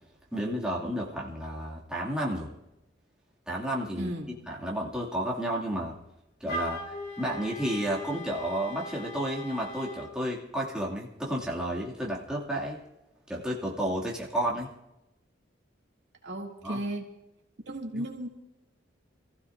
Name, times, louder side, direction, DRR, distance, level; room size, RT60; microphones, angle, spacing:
voice 1, 0.3-2.5 3.5-4.1 4.5-6.0 6.4-12.8 13.3-14.7 16.6-16.8 17.9-18.0, right 1 dB, 5° right, -5 dB, 2.2 m, -32 dB
voice 2, 4.0-4.3 16.2-17.1 17.7-18.3, right 1 dB, 60° right, -1 dB, 2.5 m, -34 dB
Wind instrument woodwind instrument, 6.5-10.1, left 1 dB, 50° left, 3.0 m, -39 dB
27.5 x 15.5 x 2.6 m, 0.92 s
head